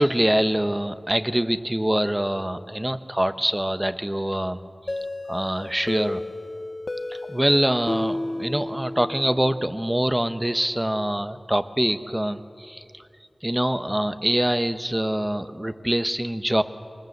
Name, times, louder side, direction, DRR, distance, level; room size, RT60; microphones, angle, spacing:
voice 1, 0.0-4.6 5.3-6.2 7.3-12.8 13.4-16.6, right 1 dB, 15° right, 11 dB, 1.0 m, -24 dB
sound 1, 4.9-9.6, left 2 dB, 45° left, 1.1 m, -32 dB
25.0 x 19.5 x 8.0 m, 2.4 s
wide cardioid pair, 60°, 0 cm